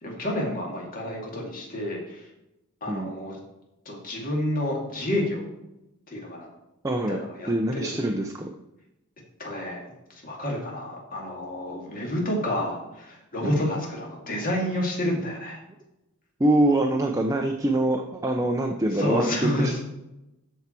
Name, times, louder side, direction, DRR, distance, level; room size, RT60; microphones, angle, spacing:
voice 1, 0.0-2.2 2.8-3.4 3.9-5.4 6.1-6.5 7.1-7.9 9.4-15.6 18.9-19.8, left 1 dB, 40° left, -1 dB, 2.3 m, -29 dB
voice 2, 6.8-7.2 7.5-8.5 13.4-13.6 16.4-19.8, right 1 dB, 15° right, 2 dB, 0.6 m, -24 dB
13.0 x 4.7 x 4.4 m, 0.91 s
head